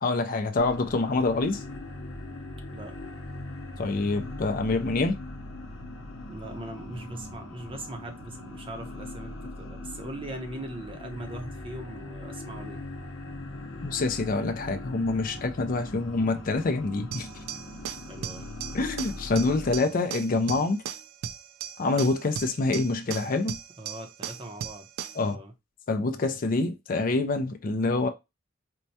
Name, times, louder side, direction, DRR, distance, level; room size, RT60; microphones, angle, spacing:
voice 1, 0.0-1.6 3.8-5.2 13.8-17.3 18.7-20.8 21.8-23.6 25.2-25.4 25.9-28.1, left 3 dB, 45° left, 0.4 m, -26 dB
sound 1, 0.6-19.8, left 2 dB, 80° left, 0.7 m, -40 dB
voice 2, 6.3-12.8 18.1-18.5 23.8-24.9 25.2-25.5, right 1 dB, 25° right, 0.8 m, -40 dB
sound 2, 17.1-25.3, right 8 dB, 85° right, 0.3 m, -38 dB
4.4 x 2.2 x 2.7 m
head